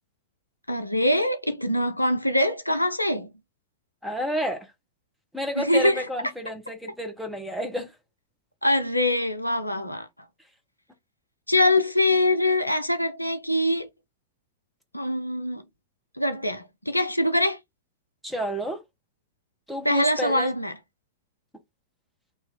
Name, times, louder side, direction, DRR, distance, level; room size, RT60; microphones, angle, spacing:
voice 1, 0.7-3.3 5.6-6.1 8.6-10.1 11.5-13.9 14.9-15.6 16.2-17.6 19.8-20.7, left 1 dB, 90° left, 0.5 m, -23 dB
voice 2, 4.0-4.7 5.3-7.9 18.2-18.8 19.7-20.5, equal, ahead, 1.0 m, -30 dB
2.8 x 2.5 x 3.8 m
figure-of-eight pair, 95°, 0 cm